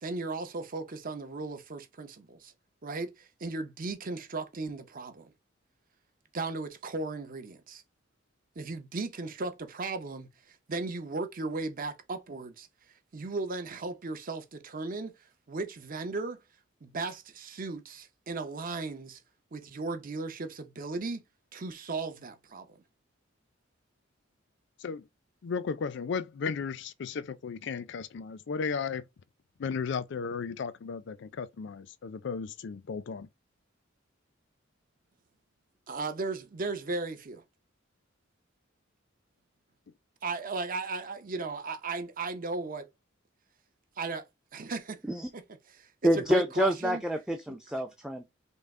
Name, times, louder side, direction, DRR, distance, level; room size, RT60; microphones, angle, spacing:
voice 1, 0.0-2.5 2.8-5.3 6.3-7.8 8.6-12.7 13.1-15.1 15.5-16.4 16.8-19.2 19.5-21.2 21.5-22.8 35.9-37.4 40.2-42.9 44.0-44.3 44.5-45.0 45.3-45.4 45.7-47.0 47.5-47.6, right 3 dB, 45° right, 0.7 m, -36 dB
voice 2, 25.4-29.0 29.6-33.3, left 5 dB, 60° left, 0.4 m, -35 dB
voice 3, 46.0-48.3, equal, 5° right, 0.4 m, -27 dB
5.4 x 2.0 x 3.6 m
head